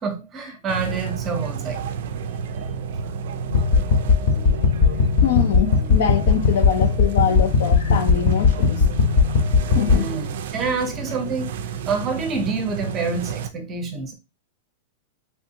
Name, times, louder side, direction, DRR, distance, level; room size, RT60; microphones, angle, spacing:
voice 1, 0.0-2.0 9.9-14.1, right 4 dB, 20° right, 0.6 m, -27 dB
sound 1, 0.7-13.5, right 6 dB, 60° right, 0.3 m, -31 dB
sound 2, 3.5-10.0, left 5 dB, 35° left, 0.8 m, -18 dB
voice 2, 5.2-8.9 9.7-10.1, left 8 dB, 60° left, 0.5 m, -24 dB
3.4 x 2.6 x 2.7 m
supercardioid pair, 170°, 0 cm